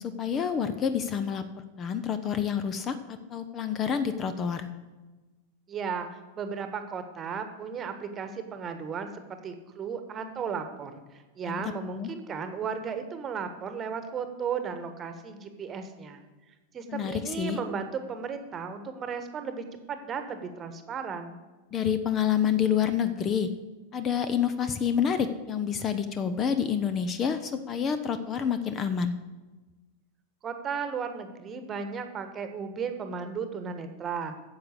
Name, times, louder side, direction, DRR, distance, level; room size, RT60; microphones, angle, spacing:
voice 1, 0.0-3.0 3.3-4.7 11.5-12.1 16.9-17.6 21.7-23.5 23.9-29.1, left 8 dB, 25° left, 11 dB, 0.7 m, -28 dB
voice 2, 5.7-16.2 16.7-21.4 30.4-34.4, right 6 dB, 25° right, 8 dB, 1.3 m, -35 dB
9.7 x 7.2 x 8.1 m, 1.2 s
figure-of-eight pair, 90°, 0 cm